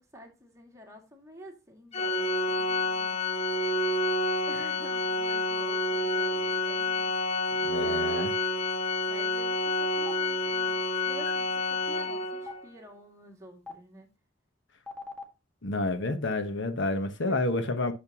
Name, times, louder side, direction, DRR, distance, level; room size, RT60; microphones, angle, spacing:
voice 1, 0.0-3.2 4.5-7.1 7.7-8.6 9.0-14.1 17.2-17.4, equal, 15° right, 2.3 m, -49 dB
Organ, 1.9-12.6, left 2 dB, 35° left, 0.8 m, -29 dB
voice 2, 7.6-8.3 15.6-17.9, left 2 dB, 65° left, 1.1 m, -29 dB
Stream, 10.1-10.2 11.3-11.4 12.5-12.6 13.7-13.8 14.9-15.2, left 3 dB, 5° left, 1.8 m, -38 dB
11.0 x 6.7 x 2.9 m
head